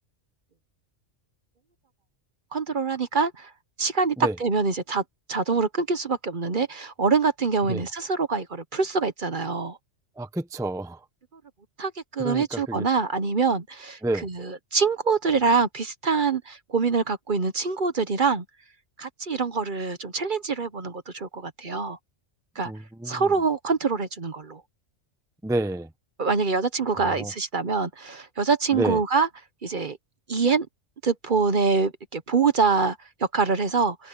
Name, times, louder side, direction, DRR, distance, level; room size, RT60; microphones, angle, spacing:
voice 1, 2.5-3.5 3.8-5.0 5.3-9.8 11.8-18.4 19.0-22.0 22.6-22.7 23.1-24.6 26.2-29.3 29.6-30.0 30.3-30.7 31.0-34.1, right 4 dB, 45° right, 1.1 m, -25 dB
voice 2, 10.2-11.0 12.2-12.8 14.0-14.3 22.7-23.3 25.4-25.9 27.1-27.3 28.7-29.0, right 1 dB, 5° right, 0.7 m, -29 dB
omnidirectional pair, 1.3 m